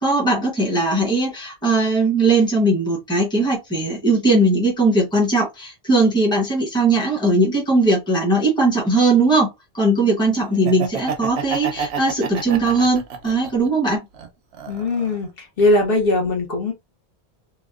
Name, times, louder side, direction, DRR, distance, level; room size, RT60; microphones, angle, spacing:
voice 1, 0.0-9.5 9.7-14.0, right 2 dB, 5° left, 0.8 m, -19 dB
Laughter, 10.5-13.7 14.1-15.2, right 6 dB, 90° right, 0.9 m, -29 dB
voice 2, 14.7-15.3 15.6-16.7, left 2 dB, 65° left, 1.0 m, -19 dB
2.9 x 2.1 x 2.3 m
omnidirectional pair, 1.1 m